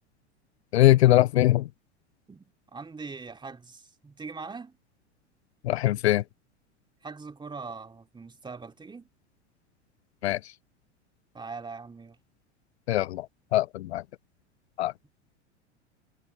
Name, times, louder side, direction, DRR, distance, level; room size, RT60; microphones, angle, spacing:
voice 1, 0.7-1.7 5.6-6.2 10.2-10.4 12.9-13.3 13.5-14.0 14.8-14.9, left 15 dB, 65° left, 0.5 m, -21 dB
voice 2, 2.3-4.8 7.0-9.1 11.3-12.2, right 4 dB, 15° right, 2.8 m, -41 dB
figure-of-eight pair, 85°, 35 cm